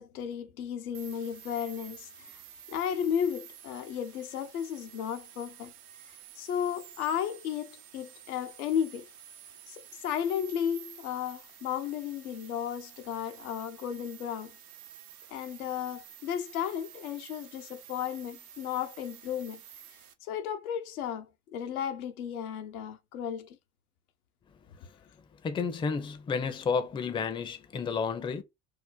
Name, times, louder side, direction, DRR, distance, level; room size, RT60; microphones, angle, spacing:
voice 1, 0.0-2.4 2.7-5.7 6.4-9.1 9.7-14.5 15.3-19.6 20.2-23.6, left 9 dB, 85° left, 0.6 m, -34 dB
sound 1, 0.9-20.1, right 9 dB, 90° right, 0.6 m, -51 dB
voice 2, 25.4-28.4, left 5 dB, 15° left, 0.4 m, -31 dB
2.7 x 2.1 x 3.7 m
hypercardioid pair, 75°, 42 cm